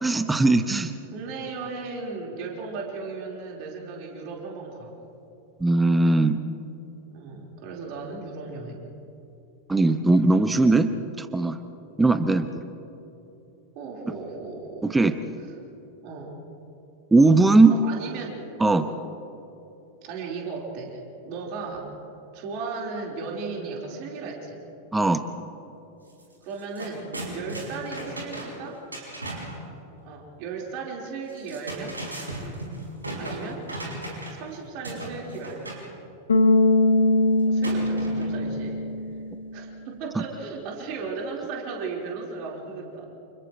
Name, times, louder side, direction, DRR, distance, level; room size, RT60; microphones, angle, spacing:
voice 1, 0.0-0.9 5.6-6.4 9.7-10.9 11.2-11.6 12.0-12.6 14.8-15.1 17.1-17.7 18.6-18.8 24.9-25.2, right 3 dB, 10° right, 11 dB, 0.9 m, -19 dB
voice 2, 1.1-5.0 7.1-8.9 13.7-15.0 15.4-15.5 16.0-16.3 17.7-18.4 18.7-18.9 20.0-22.0 22.3-24.6 26.4-27.1 27.3-28.9 30.0-32.0 33.1-33.7 34.3-35.9 37.5-38.8 39.5-43.1, right 4 dB, 45° right, -2 dB, 4.3 m, -36 dB
sound 1, 26.1-26.2 26.5-29.6 31.3-34.5 34.8-35.9 37.6-38.5, right 1 dB, 80° right, 5.2 m, -36 dB
Bass guitar, 36.3-39.4, left 2 dB, 70° left, 1.6 m, -21 dB
29.5 x 29.0 x 3.2 m, 2.9 s
figure-of-eight pair, 90°, 0 cm